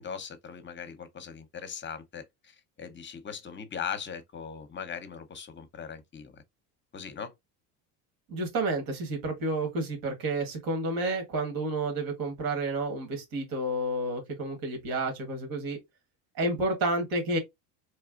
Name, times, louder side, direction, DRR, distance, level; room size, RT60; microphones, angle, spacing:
voice 1, 0.0-6.4 6.9-7.3, left 7 dB, 30° left, 0.8 m, -39 dB
voice 2, 8.3-15.8 16.4-17.4, right 2 dB, 55° right, 1.6 m, -30 dB
4.0 x 3.3 x 2.5 m
supercardioid pair, 110°, 40 cm